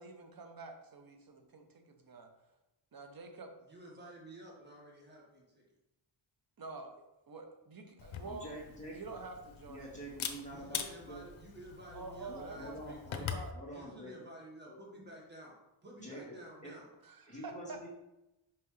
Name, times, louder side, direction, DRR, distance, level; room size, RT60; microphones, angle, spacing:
voice 1, 0.0-2.3 2.9-3.5 6.6-7.0 7.3-8.5 8.9-9.9 10.3-10.4 11.9-13.0 13.3-13.5 17.0-17.9, right 3 dB, 50° right, 5 dB, 0.9 m, -47 dB
voice 2, 3.7-5.6 10.5-13.3 13.7-16.9, right 1 dB, 20° right, -2 dB, 1.5 m, -52 dB
Camera, 8.0-13.5, left 7 dB, 80° left, 0.7 m, -43 dB
voice 3, 8.2-8.9 9.7-11.2 12.3-14.3 14.7-15.1 16.0-16.4 16.6-16.7 17.3-17.9, right 1 dB, 15° left, -5 dB, 1.9 m, -47 dB
5.7 x 5.3 x 3.2 m, 0.94 s
wide cardioid pair, 150°, 47 cm